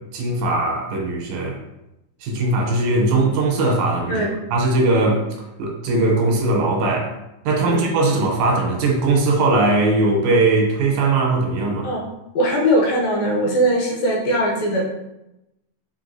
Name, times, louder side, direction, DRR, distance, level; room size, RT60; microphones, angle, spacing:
voice 1, 0.1-1.6 2.2-5.2 5.6-7.2 7.5-11.9, right 2 dB, 80° right, 0 dB, 2.2 m, -19 dB
voice 2, 12.3-14.9, equal, 75° left, -2 dB, 2.1 m, -20 dB
4.5 x 3.6 x 2.6 m, 0.90 s
omnidirectional pair, 3.4 m